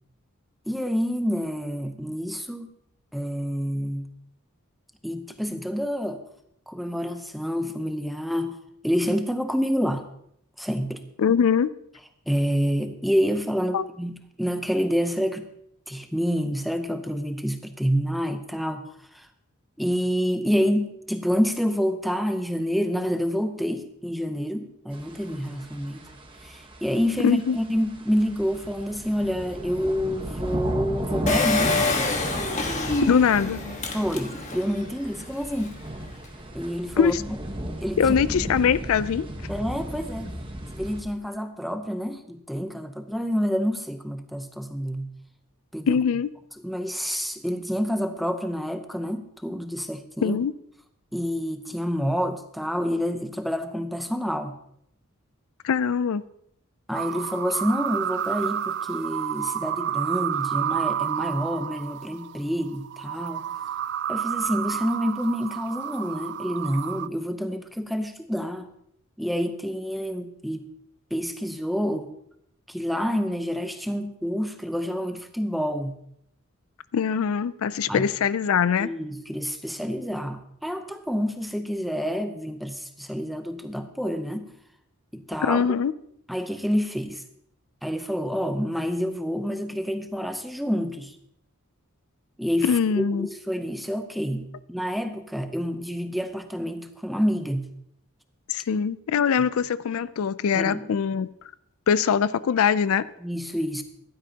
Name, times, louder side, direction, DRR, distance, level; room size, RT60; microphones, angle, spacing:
voice 1, 0.7-2.7 3.1-4.1 5.0-6.2 6.7-8.6 8.8-10.1 10.6-11.0 12.3-15.5 15.9-19.3 19.8-26.0 26.4-31.7 33.9-35.8 36.5-37.4 37.8-38.3 39.5-40.4 40.7-45.1 45.7-46.0 46.6-50.4 51.1-54.6 56.9-63.5 64.1-68.7 69.2-70.7 71.1-72.1 72.7-75.9 77.9-78.1 78.8-84.5 85.1-85.8 86.3-87.2 87.8-91.1 92.4-97.7 99.4-99.5 100.5-100.9 103.2-103.8, equal, ahead, 7 dB, 0.7 m, -28 dB
voice 2, 11.2-11.7 13.7-13.9 27.2-27.6 33.0-33.6 37.0-37.2 38.0-39.3 45.9-46.3 50.2-50.5 55.6-56.2 76.9-78.9 85.4-85.9 92.6-93.3 98.5-101.3 101.9-103.0, left 7 dB, 70° left, 16 dB, 0.4 m, -22 dB
sound 1, 24.9-41.0, right 1 dB, 25° right, 1.2 m, -35 dB
Engine, 31.3-34.7 35.2-35.3 35.5-35.6, left 3 dB, 35° left, 1.3 m, -26 dB
sound 2, 56.9-67.1, right 9 dB, 50° right, 0.3 m, -30 dB
15.0 x 12.0 x 2.9 m, 0.73 s
head